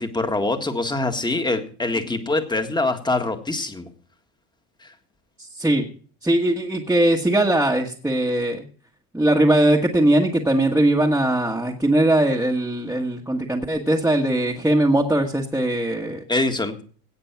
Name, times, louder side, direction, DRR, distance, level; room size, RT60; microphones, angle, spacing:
voice 1, 0.0-3.9 4.8-4.9 16.3-16.8, left 2 dB, 10° left, 7 dB, 1.7 m, -24 dB
voice 2, 5.4-5.8 6.2-8.6 9.1-16.2, right 1 dB, 5° right, -1 dB, 1.5 m, -20 dB
17.5 x 6.1 x 5.9 m, 0.43 s
cardioid pair, 110°, 42 cm